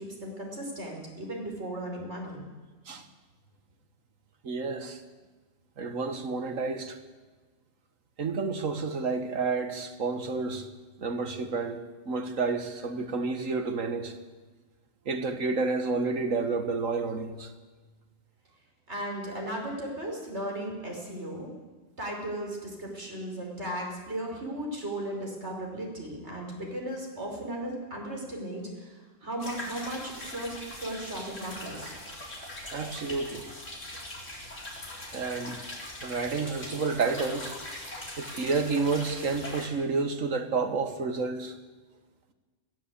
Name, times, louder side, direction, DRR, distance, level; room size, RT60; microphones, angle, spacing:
voice 1, 0.0-2.5 18.9-21.5 22.0-31.9, right 1 dB, 60° right, 5.3 m, -36 dB
voice 2, 4.4-5.0 5.8-7.0 8.2-10.7 11.0-11.8 12.1-14.1 15.1-17.5 32.7-33.5 35.1-35.6 36.0-37.6 38.2-41.6, right 4 dB, 85° right, 1.9 m, -30 dB
sound 1, 29.4-39.7, left 1 dB, 70° left, 4.5 m, -41 dB
21.5 x 15.5 x 8.4 m
omnidirectional pair, 1.3 m